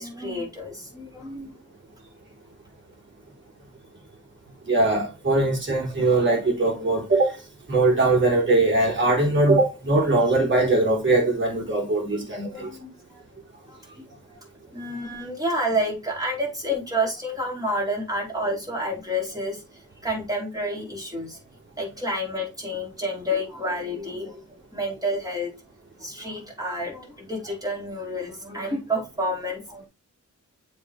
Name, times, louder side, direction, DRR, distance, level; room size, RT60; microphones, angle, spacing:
voice 1, 0.0-1.6 12.5-13.2 13.7-14.0 14.7-19.6 20.0-21.4 21.8-25.5 26.0-29.9, equal, 10° right, 4.5 m, -29 dB
voice 2, 4.7-7.4 7.7-12.7, right 2 dB, 40° right, 3.8 m, -21 dB
7.3 x 4.4 x 4.8 m
wide cardioid pair, 115°, 31 cm